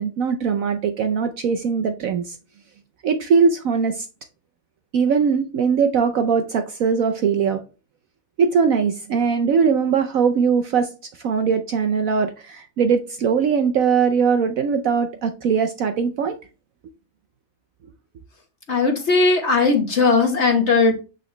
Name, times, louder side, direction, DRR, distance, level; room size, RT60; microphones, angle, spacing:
voice 1, 0.0-2.4 3.0-4.1 4.9-7.6 8.4-10.9 11.2-16.4, right 6 dB, 80° right, 0.7 m, -20 dB
voice 2, 18.7-20.9, left 4 dB, 40° left, 1.1 m, -18 dB
8.2 x 4.1 x 3.2 m
omnidirectional pair, 2.2 m